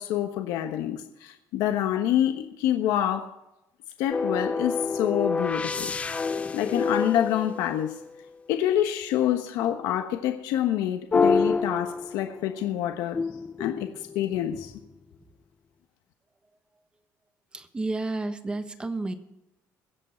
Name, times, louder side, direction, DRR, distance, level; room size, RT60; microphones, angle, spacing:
voice 1, 0.0-3.3 4.0-5.9 6.5-8.0 8.5-13.2 13.6-14.7, left 11 dB, 85° left, 1.2 m, -27 dB
sound 1, 4.1-8.3 11.1-12.6 13.1-14.9, left 4 dB, 20° left, 0.6 m, -28 dB
voice 2, 17.5-19.1, right 2 dB, 15° right, 1.2 m, -31 dB
22.0 x 8.2 x 4.4 m
cardioid pair, 150°, 6 cm